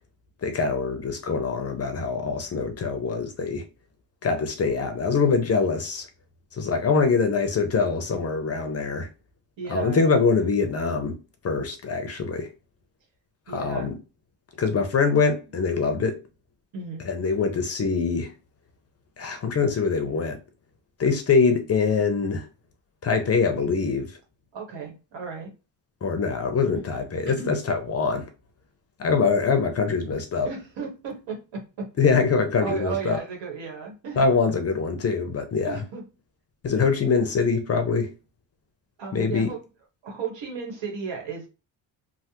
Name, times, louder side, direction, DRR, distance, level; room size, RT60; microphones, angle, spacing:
voice 1, 0.4-3.6 4.2-6.1 6.5-9.1 9.7-11.2 11.4-12.5 13.5-13.9 14.6-16.2 17.0-18.3 19.2-20.4 21.0-22.5 23.0-24.2 26.0-28.3 29.0-30.5 32.0-33.2 34.2-35.8 36.6-38.1 39.1-39.5, left 5 dB, 35° left, 0.5 m, -24 dB
voice 2, 9.6-10.0 13.5-13.9 16.7-17.1 24.5-25.5 27.3-27.5 30.4-31.9 32.6-34.3 35.6-36.0 39.0-39.6 40.0-41.5, right 5 dB, 80° right, 1.3 m, -34 dB
3.2 x 2.1 x 2.9 m
cardioid pair, 140°, 44 cm